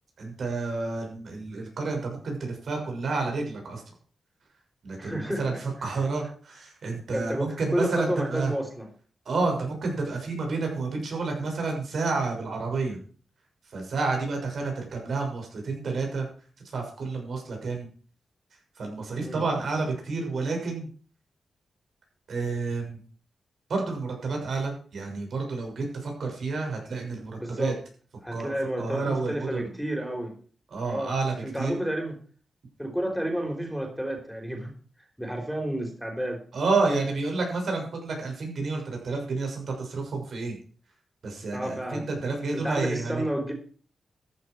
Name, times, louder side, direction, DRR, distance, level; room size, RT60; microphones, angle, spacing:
voice 1, 0.2-3.8 4.8-8.5 9.2-13.0 13.7-16.2 16.7-17.9 18.8-20.9 22.3-23.0 23.7-27.7 28.3-28.5 28.8-29.7 30.7-31.7 36.5-40.6 41.2-43.3, right 3 dB, 75° right, 2 dB, 6.4 m, -30 dB
voice 2, 5.0-5.6 7.1-8.9 19.1-19.4 27.4-27.8 28.2-30.4 30.8-31.1 31.4-32.2 32.8-34.7 35.2-36.4 41.5-42.0 42.5-43.5, right 1 dB, ahead, 3 dB, 4.4 m, -30 dB
14.0 x 11.0 x 4.8 m, 0.42 s
cardioid pair, 60°, 0 cm